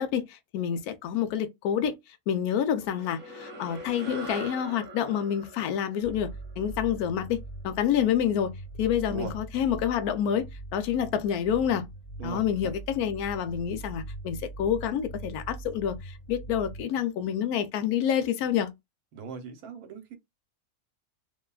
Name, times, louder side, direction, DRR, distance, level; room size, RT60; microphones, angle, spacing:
voice 1, 0.0-2.0 2.3-10.5 10.7-11.9 12.2-18.7, left 9 dB, 80° left, 1.1 m, -28 dB
sound 1, 2.8-7.5, right 2 dB, 35° right, 0.9 m, -43 dB
sound 2, 6.0-16.8, right 2 dB, 55° left, 0.5 m, -42 dB
voice 2, 12.2-12.7 19.1-20.2, right 5 dB, 80° right, 1.2 m, -39 dB
3.2 x 2.2 x 2.2 m
omnidirectional pair, 1.6 m